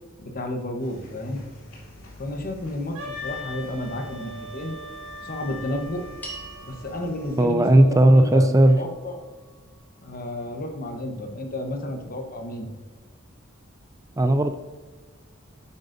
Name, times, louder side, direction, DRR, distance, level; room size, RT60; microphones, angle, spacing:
voice 1, 0.2-1.4 2.2-4.8 5.2-6.0 6.6-9.2 10.0-12.7, left 1 dB, 45° left, 4 dB, 1.1 m, -32 dB
sound 1, 0.8-7.4, left 1 dB, 85° left, 2.6 m, -47 dB
Wind instrument woodwind instrument, 2.9-6.8, left 2 dB, 80° right, 2.0 m, -39 dB
sound 2, 6.2-10.7, right 2 dB, 10° left, 2.1 m, -46 dB
voice 2, 7.4-8.8 14.2-14.5, right 1 dB, 15° right, 8 dB, 0.3 m, -16 dB
9.7 x 7.7 x 2.6 m, 1.4 s
head